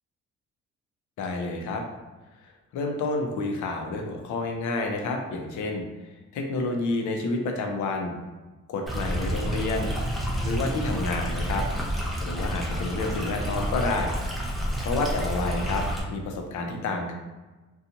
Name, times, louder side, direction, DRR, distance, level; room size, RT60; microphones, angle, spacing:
voice 1, 1.2-1.8 2.7-5.8 6.3-8.2 8.7-9.9 10.4-11.6 12.2-14.4 14.8-17.1, left 3 dB, 75° left, 3 dB, 0.6 m, -29 dB
Stream, 8.9-16.0, equal, ahead, 0.6 m, -29 dB
2.5 x 2.3 x 2.7 m, 1.2 s
cardioid pair, 90°, 30 cm